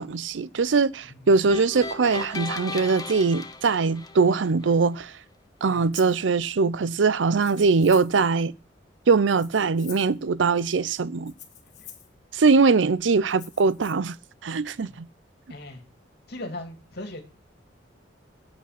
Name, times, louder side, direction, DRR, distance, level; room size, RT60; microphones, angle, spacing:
voice 1, 0.0-5.1 5.6-8.5 9.1-11.3 12.3-14.2 14.4-15.1, right 4 dB, 85° right, 0.5 m, -22 dB
sound 1, 1.5-4.7, left 3 dB, 20° left, 1.0 m, -36 dB
Rattle (instrument), 5.9-6.2 7.3-8.2 9.3-10.2 11.3-12.1 13.3-13.9, left 9 dB, 40° left, 1.7 m, -47 dB
voice 2, 15.5-15.8 16.3-17.2, left 1 dB, 60° left, 2.6 m, -38 dB
8.6 x 8.5 x 5.8 m
head